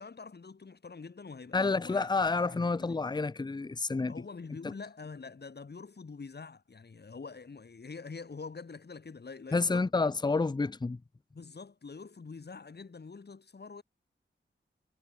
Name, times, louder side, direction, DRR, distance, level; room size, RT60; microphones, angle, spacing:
voice 1, 0.0-2.1 2.5-3.0 4.1-9.8 10.3-10.4 11.3-13.8, left 4 dB, 50° left, 4.3 m, -45 dB
voice 2, 1.5-4.1 9.5-11.0, left 3 dB, 20° left, 0.6 m, -29 dB
wide cardioid pair, 85°, 21 cm